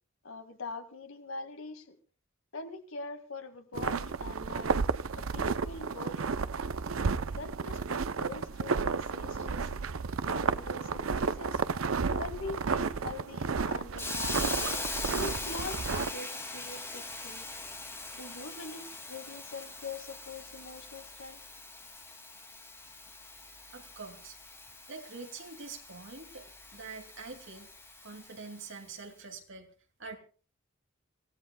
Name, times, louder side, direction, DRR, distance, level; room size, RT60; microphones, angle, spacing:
voice 1, 0.2-2.0 2.5-4.8 5.2-6.3 7.0-9.8 10.2-11.6 12.2-14.4 15.2-17.5 18.1-21.4, left 3 dB, 80° left, 7 dB, 2.1 m, -43 dB
sound 1, 3.7-16.1, right 5 dB, 80° right, 0.6 m, -32 dB
Hiss, 14.0-28.8, left 3 dB, 15° left, 2.4 m, -41 dB
voice 2, 23.7-24.4 24.9-27.7 28.0-29.7 30.0-30.2, right 4 dB, 65° right, 5 dB, 2.7 m, -45 dB
27.0 x 16.5 x 2.3 m, 0.38 s
head